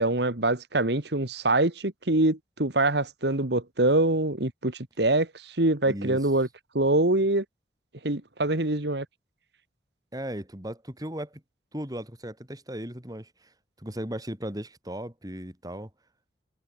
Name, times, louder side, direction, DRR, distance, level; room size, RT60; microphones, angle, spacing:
voice 1, 0.0-6.5 6.7-7.4 8.0-9.1, right 2 dB, 65° right, 1.9 m, -24 dB
voice 2, 5.9-6.2 10.1-11.4 11.7-13.5 13.8-15.9, equal, 20° right, 3.5 m, -36 dB
open air
head